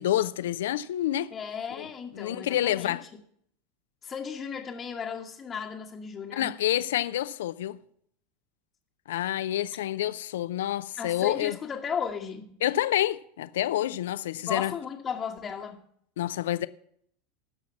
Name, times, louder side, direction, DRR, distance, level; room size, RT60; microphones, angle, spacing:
voice 1, 0.0-1.3 1.8-1.9 2.1-3.0 6.3-7.8 9.1-11.6 12.6-14.7 16.2-16.7, left 13 dB, 70° left, 0.5 m, -28 dB
voice 2, 1.3-3.1 4.0-6.6 11.0-12.5 14.5-15.8, left 6 dB, 30° left, 1.1 m, -35 dB
13.0 x 5.9 x 7.2 m
hypercardioid pair, 85°, 0 cm